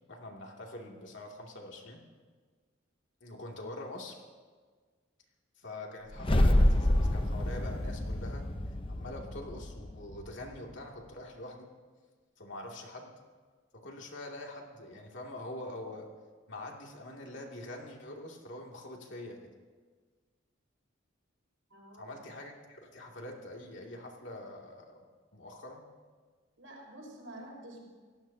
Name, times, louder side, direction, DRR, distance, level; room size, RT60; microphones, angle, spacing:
voice 1, 0.1-2.0 3.2-4.2 5.6-8.4 8.9-11.7 12.4-13.1 13.8-16.1 16.5-19.5 22.0-25.0 25.3-25.8, left 1 dB, 65° left, 0 dB, 2.6 m, -44 dB
sound 1, 6.1-10.5, left 1 dB, 25° left, 0.8 m, -28 dB
voice 2, 21.7-22.2 26.6-27.8, right 1 dB, 90° right, -1 dB, 5.7 m, -48 dB
26.5 x 17.5 x 2.9 m, 1.5 s
head